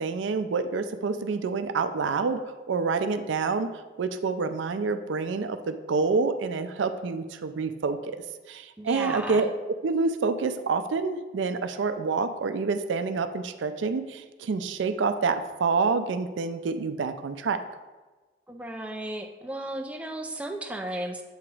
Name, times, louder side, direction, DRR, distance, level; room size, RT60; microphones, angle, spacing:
voice 1, 0.0-2.4 2.7-3.7 4.0-8.2 8.5-9.5 9.8-17.6, right 4 dB, 75° right, 10 dB, 0.4 m, -27 dB
voice 2, 8.8-9.5 18.5-21.2, right 1 dB, 5° right, 2 dB, 0.3 m, -35 dB
7.2 x 2.9 x 4.7 m, 1.3 s
head